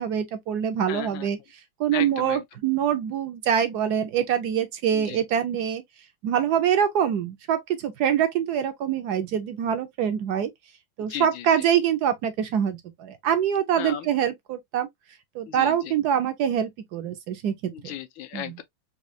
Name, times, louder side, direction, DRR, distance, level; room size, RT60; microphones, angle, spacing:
voice 1, 0.0-1.4 1.8-5.8 6.2-10.5 11.0-14.9 15.3-17.7 18.3-18.5, right 9 dB, 70° right, 1.0 m, -25 dB
voice 2, 0.9-1.3 1.9-2.4 4.9-5.2 11.1-11.6 13.8-14.1 15.5-15.9 17.7-18.6, left 12 dB, 85° left, 1.4 m, -36 dB
4.2 x 2.7 x 2.5 m
omnidirectional pair, 2.1 m